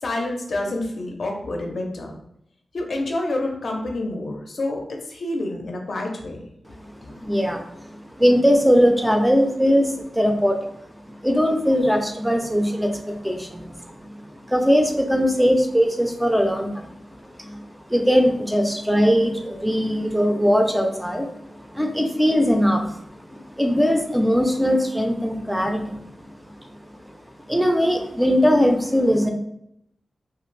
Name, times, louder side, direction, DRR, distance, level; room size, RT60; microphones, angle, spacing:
voice 1, 0.0-2.1 2.7-6.4 7.0-7.2, left 2 dB, 60° left, 2 dB, 0.5 m, -28 dB
voice 2, 7.1-10.6 11.1-16.9 17.4-17.6 17.9-22.9 23.3-26.0 26.6-26.8 27.0-27.1 27.5-29.3, equal, 5° right, 4 dB, 0.4 m, -20 dB
2.5 x 2.4 x 3.2 m, 0.76 s
wide cardioid pair, 100°, 0 cm